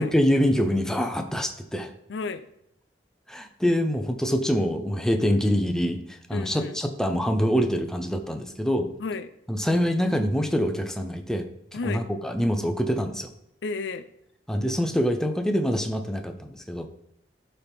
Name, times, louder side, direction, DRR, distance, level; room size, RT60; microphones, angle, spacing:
voice 1, 0.0-1.9 3.3-8.9 9.5-11.5 11.8-13.3 14.5-16.9, equal, 5° left, 5 dB, 0.6 m, -25 dB
voice 2, 2.1-2.4 6.3-6.8 9.0-9.3 11.7-12.0 13.6-14.0, left 4 dB, 80° left, 12 dB, 0.5 m, -32 dB
11.5 x 4.2 x 3.5 m, 0.78 s
head